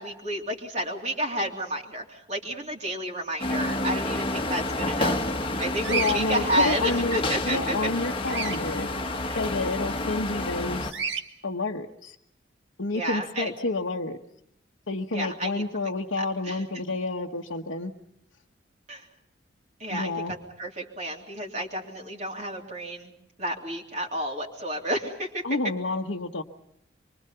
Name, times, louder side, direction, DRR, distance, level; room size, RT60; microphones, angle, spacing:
voice 1, 0.0-5.2 5.6-7.8 9.3-9.4 12.9-13.5 15.1-15.6 16.2-16.6 18.9-19.0 19.8-20.1 20.6-23.1 23.4-25.4, right 1 dB, 35° right, 1 dB, 3.1 m, -31 dB
sound 1, 3.4-10.9, left 2 dB, 25° left, 1.5 m, -29 dB
Bird vocalization bird call bird song, 5.8-6.2 8.2-8.6 10.9-11.2, right 5 dB, 65° right, 1.8 m, -29 dB
voice 2, 5.9-8.9 9.3-11.1 11.4-12.1 12.8-14.2 14.9-17.9 19.9-20.3 25.4-26.4, left 3 dB, 90° left, -1 dB, 1.2 m, -29 dB
26.0 x 23.5 x 5.7 m, 0.76 s
head